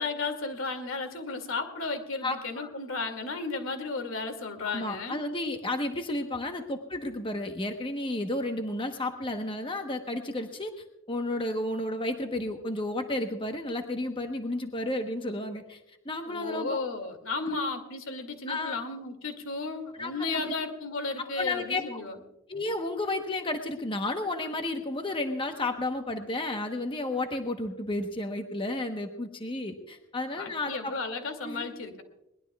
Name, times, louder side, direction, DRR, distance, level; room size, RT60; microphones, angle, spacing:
voice 1, 0.0-5.2 16.3-22.2 30.4-32.0, left 3 dB, 85° left, 6 dB, 2.4 m, -34 dB
voice 2, 2.2-2.7 4.6-10.7 11.1-15.8 16.0-16.7 17.5-17.6 18.5-18.8 20.0-20.5 21.2-22.0 22.5-30.9 31.4-31.7, left 2 dB, 25° left, 5 dB, 1.0 m, -32 dB
22.5 x 20.0 x 2.3 m, 0.87 s
head